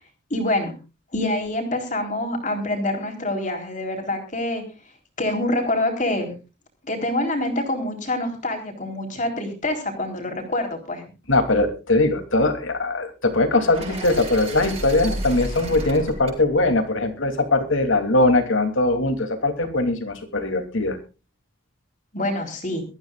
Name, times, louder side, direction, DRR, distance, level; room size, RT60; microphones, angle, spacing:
voice 1, 0.3-0.7 1.1-4.6 5.2-6.3 6.8-11.0 22.1-22.8, left 1 dB, 40° left, 3 dB, 3.9 m, -26 dB
voice 2, 11.3-21.0, left 2 dB, 80° left, 7 dB, 2.9 m, -21 dB
sound 1, 13.7-17.8, right 1 dB, 30° right, 6.5 m, -34 dB
23.0 x 14.0 x 2.4 m, 0.30 s
head